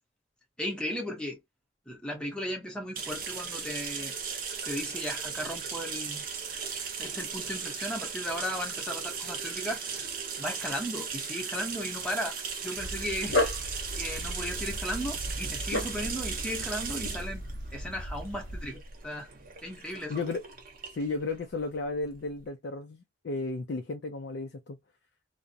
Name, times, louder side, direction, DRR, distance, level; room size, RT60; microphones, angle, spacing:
voice 1, 0.6-1.4 1.9-4.1 4.6-6.2 7.0-10.1 10.4-12.4 12.6-13.5 14.0-17.4 17.7-19.3 19.6-20.2, equal, 5° left, 0.8 m, -36 dB
sound 1, 3.0-22.4, right 6 dB, 45° right, 0.6 m, -37 dB
Dog, 12.8-18.7, left 1 dB, 85° left, 0.9 m, -34 dB
voice 2, 20.1-20.4 20.9-24.8, left 3 dB, 60° left, 0.4 m, -34 dB
2.4 x 2.0 x 2.5 m
head